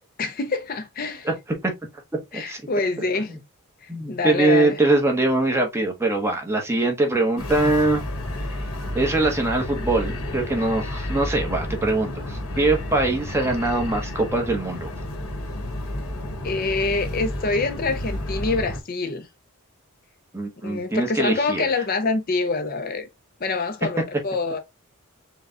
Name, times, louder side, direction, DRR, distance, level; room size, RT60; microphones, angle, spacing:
voice 1, 0.2-1.3 2.3-3.3 3.8-4.8 16.4-19.3 20.6-23.1 23.4-24.6, left 3 dB, 40° left, 0.5 m, -26 dB
voice 2, 3.9-8.0 8.9-14.9 20.3-21.6, right 2 dB, 10° right, 0.9 m, -22 dB
sound 1, 7.4-18.8, left 1 dB, 90° left, 1.4 m, -31 dB
4.7 x 2.2 x 3.7 m
head